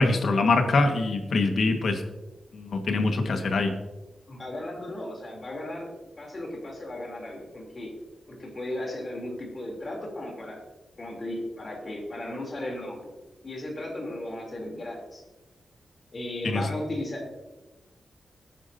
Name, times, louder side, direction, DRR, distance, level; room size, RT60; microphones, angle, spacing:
voice 1, 0.0-2.0 2.5-3.7 16.4-16.6, left 3 dB, 70° left, 5 dB, 1.6 m, -24 dB
voice 2, 4.3-7.9 8.3-10.6 11.0-13.1 13.4-15.2 16.1-17.3, left 1 dB, 35° left, -1 dB, 3.3 m, -35 dB
20.5 x 9.7 x 2.8 m, 1.1 s
wide cardioid pair, 150°, 0 cm